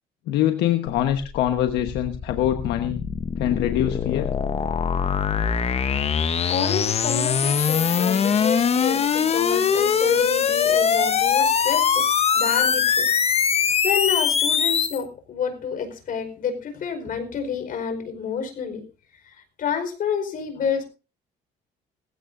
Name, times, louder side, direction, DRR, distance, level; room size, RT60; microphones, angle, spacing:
voice 1, 0.3-3.0 3.4-4.3, left 11 dB, 85° left, 6 dB, 1.2 m, -23 dB
sound 1, 0.9-15.0, left 7 dB, 35° left, 1.0 m, -22 dB
voice 2, 6.5-12.1 12.3-18.8 19.2-20.8, left 7 dB, 55° left, 7 dB, 4.7 m, -29 dB
19.5 x 16.0 x 2.6 m, 0.32 s
cardioid pair, 110°, 17 cm